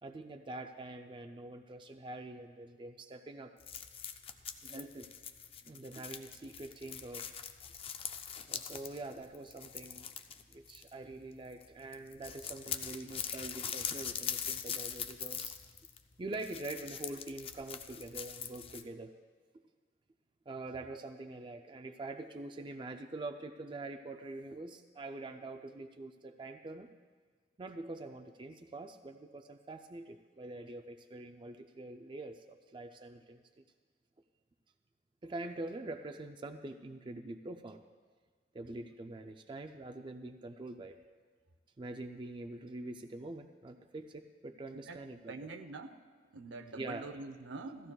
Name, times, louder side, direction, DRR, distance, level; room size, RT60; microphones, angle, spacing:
voice 1, 0.0-3.5 4.6-5.1 5.7-7.3 8.5-10.1 10.5-15.5 16.2-19.1 20.5-26.9 27.6-33.4 35.2-37.8 38.5-41.0 41.8-45.5 46.7-47.1, right 2 dB, 25° right, 5 dB, 0.4 m, -45 dB
sound 1, 3.6-11.2 11.5-11.7 11.9-18.8, left 8 dB, 30° left, 0.5 m, -42 dB
voice 2, 45.3-45.9 46.3-47.9, right 3 dB, 75° right, 8 dB, 0.7 m, -45 dB
16.0 x 14.5 x 2.3 m, 1.5 s
head